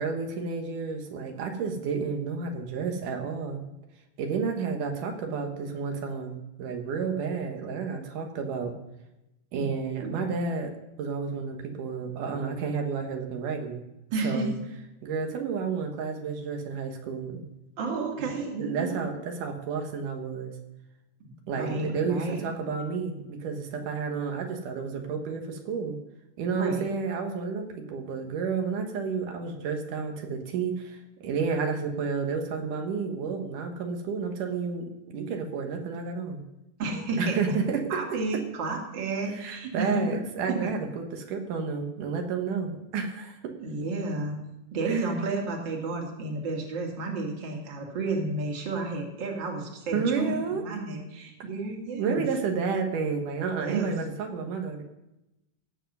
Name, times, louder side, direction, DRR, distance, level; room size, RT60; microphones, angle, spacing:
voice 1, 0.0-3.6 4.2-8.8 9.5-13.8 14.2-14.6 15.0-17.4 18.2-18.3 18.6-20.6 21.5-26.0 26.4-36.4 37.2-38.0 39.3-43.5 44.9-45.1 49.9-50.6 51.9-54.8, right 5 dB, 85° right, 3 dB, 2.9 m, -31 dB
voice 2, 14.1-14.5 17.8-19.0 21.6-22.4 26.5-26.9 36.8-37.6 37.9-40.2 40.5-40.7 43.6-44.4 44.7-52.2 53.6-53.9, right 3 dB, 40° right, 1 dB, 2.4 m, -31 dB
17.0 x 7.1 x 5.4 m, 0.92 s
omnidirectional pair, 3.6 m